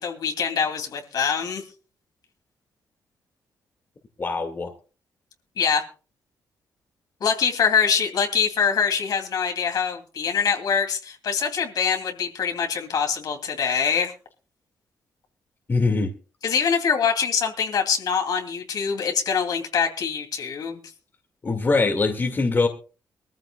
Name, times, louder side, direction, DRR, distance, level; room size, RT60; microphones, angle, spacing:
voice 1, 0.0-1.6 5.6-5.8 7.2-14.1 16.4-20.8, left 6 dB, 65° left, 2.7 m, -24 dB
voice 2, 4.2-4.7 15.7-16.1 21.4-22.7, left 3 dB, 30° left, 2.0 m, -22 dB
23.0 x 14.5 x 2.3 m
cardioid pair, 130°, 7 cm